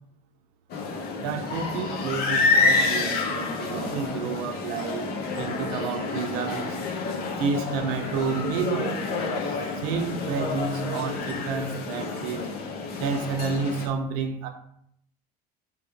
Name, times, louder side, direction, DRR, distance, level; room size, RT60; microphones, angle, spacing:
sound 1, 0.7-13.9, left 3 dB, 50° left, 0.7 m, -28 dB
voice 1, 1.2-5.1 5.4-6.8 7.4-9.0 9.5-12.5 13.0-14.5, right 5 dB, 70° right, 0.6 m, -30 dB
3.5 x 2.8 x 3.4 m
hypercardioid pair, 80°, 21 cm